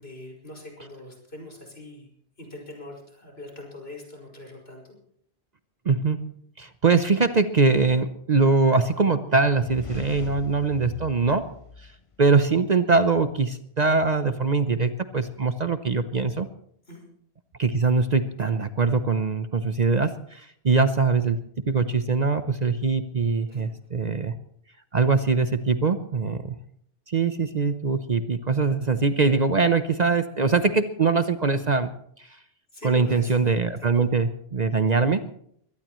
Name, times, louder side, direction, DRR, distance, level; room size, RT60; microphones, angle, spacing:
voice 1, 0.0-2.1 2.4-4.9 16.9-17.0 23.5-23.7 32.7-33.3 33.8-34.1, left 1 dB, 65° left, 0 dB, 5.9 m, -42 dB
voice 2, 5.9-11.5 12.2-16.5 17.6-21.4 21.6-24.3 24.9-26.6 27.1-31.9 32.2-32.3 32.8-35.2, right 4 dB, 45° right, 10 dB, 0.8 m, -22 dB
sound 1, 9.4-12.4, left 4 dB, 35° left, 0.7 m, -41 dB
23.0 x 18.0 x 3.1 m, 0.67 s
omnidirectional pair, 1.1 m